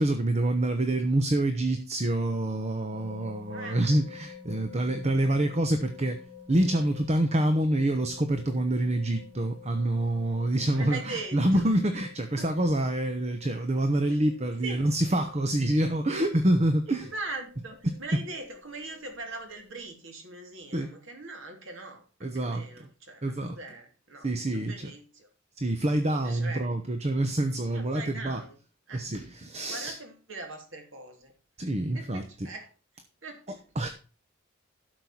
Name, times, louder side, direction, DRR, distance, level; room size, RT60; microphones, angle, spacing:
voice 1, 0.0-6.2 6.5-17.1 17.8-18.0 20.7-20.9 22.2-22.7 23.2-23.6 24.2-24.9 25.6-28.4 28.9-30.0 31.6-32.2 33.8-33.9, right 1 dB, 35° right, 1.0 m, -26 dB
sound 1, 2.9-19.8, left 7 dB, 10° left, 3.3 m, -50 dB
voice 2, 10.7-11.7 12.4-12.5 14.1-14.2 14.6-14.9 16.9-25.3 26.1-26.7 27.7-28.6 28.9-29.0 29.6-31.3 31.9-32.7 33.2-33.6, right 3 dB, 70° right, 3.0 m, -41 dB
12.0 x 6.8 x 4.4 m
head